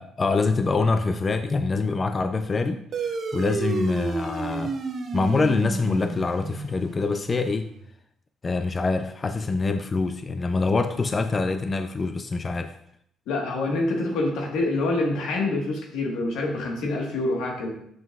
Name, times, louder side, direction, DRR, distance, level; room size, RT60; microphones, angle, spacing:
voice 1, 0.0-4.7 5.1-7.7 8.4-12.7, left 3 dB, 25° left, 8 dB, 0.3 m, -25 dB
sound 1, 2.9-7.8, right 4 dB, 45° right, 0.8 m, -31 dB
voice 2, 13.3-17.8, left 2 dB, 85° left, 0 dB, 1.4 m, -26 dB
7.3 x 5.8 x 2.4 m, 0.72 s
cardioid pair, 130°, 0 cm